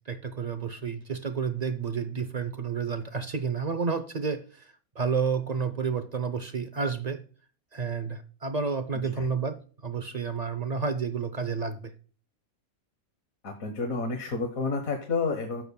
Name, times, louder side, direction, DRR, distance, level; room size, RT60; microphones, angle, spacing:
voice 1, 0.1-7.2 7.7-11.9, right 5 dB, 55° right, 10 dB, 0.4 m, -30 dB
voice 2, 13.4-15.6, left 4 dB, 75° left, 4 dB, 1.6 m, -30 dB
14.5 x 7.0 x 2.2 m, 0.40 s
omnidirectional pair, 1.5 m